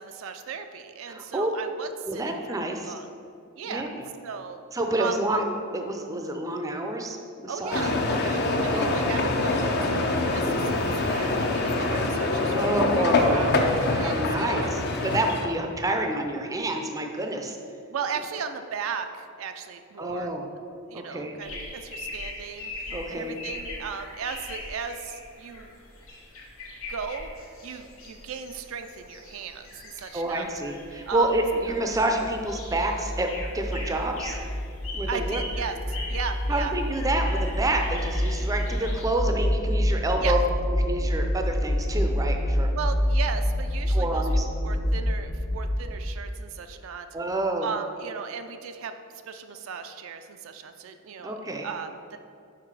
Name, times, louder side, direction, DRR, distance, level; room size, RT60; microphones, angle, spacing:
voice 1, 0.0-2.6 2.8-3.1 3.6-3.9 4.2-4.6 5.0-5.4 7.5-14.7 17.9-20.3 20.9-22.7 23.1-25.7 26.9-27.3 27.6-30.5 31.0-31.3 35.1-36.7 40.2-40.4 42.7-44.3 44.6-47.1 47.6-48.9 49.3-51.4 51.6-52.2, right 6 dB, 75° right, 7 dB, 0.4 m, -36 dB
voice 2, 1.1-1.5 2.1-2.9 3.6-4.1 4.7-5.4 5.7-7.8 8.7-9.0 12.4-13.6 13.9-17.6 20.0-20.5 20.9-21.4 22.9-23.4 30.1-33.3 33.5-34.4 34.9-35.4 36.5-40.4 40.7-42.7 43.9-44.5 47.1-47.7 51.2-51.7, right 2 dB, 15° right, 3 dB, 0.5 m, -28 dB
sound 1, 7.7-15.5, left 2 dB, 55° left, 0.6 m, -25 dB
sound 2, 21.4-39.1, left 2 dB, 80° left, 1.2 m, -41 dB
sound 3, 31.0-46.3, equal, 30° left, 0.9 m, -27 dB
5.8 x 4.8 x 4.7 m, 2.4 s
head